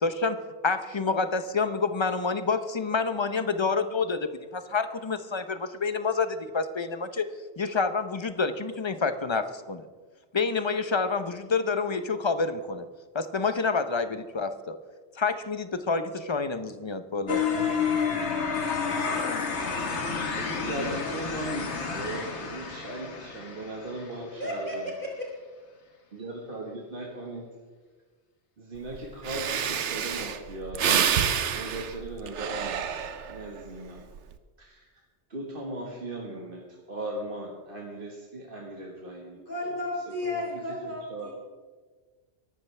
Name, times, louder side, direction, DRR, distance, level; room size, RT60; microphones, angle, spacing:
voice 1, 0.0-7.3 7.6-9.9 10.3-12.9 13.1-14.8 15.1-17.4, left 4 dB, 30° left, 10 dB, 0.7 m, -28 dB
sound 1, 17.3-24.2, left 5 dB, 75° left, 1.6 m, -30 dB
voice 2, 20.4-24.9 26.1-27.5 28.6-31.0 31.5-33.0 33.3-34.0 34.6-34.8 35.3-39.4 40.3-40.4 41.1-41.3, right 1 dB, 50° right, -2 dB, 1.7 m, -37 dB
voice 3, 24.4-24.8 25.0-25.3 39.3-41.3, left 1 dB, 45° left, -3 dB, 3.8 m, -33 dB
Breathing, 28.9-29.0 29.2-33.5 34.0-34.3, right 8 dB, 85° right, 1.1 m, -28 dB
22.5 x 12.0 x 3.3 m, 1.4 s
omnidirectional pair, 1.2 m